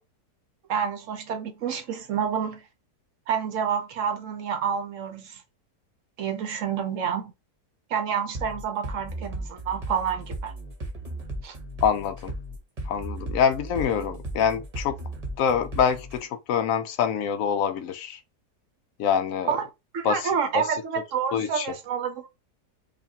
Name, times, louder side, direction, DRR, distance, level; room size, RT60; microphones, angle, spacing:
voice 1, 0.7-2.6 3.3-5.4 6.2-7.3 7.9-10.5 11.4-11.6 19.5-19.7 19.9-22.3, right 7 dB, 60° right, 0.9 m, -28 dB
sound 1, 8.3-16.2, right 1 dB, 30° right, 0.9 m, -36 dB
voice 2, 11.8-12.3 12.9-15.0 15.4-18.2 19.0-19.5 20.0-20.6 21.3-21.8, left 7 dB, 70° left, 0.8 m, -25 dB
5.1 x 2.5 x 2.7 m
omnidirectional pair, 1.7 m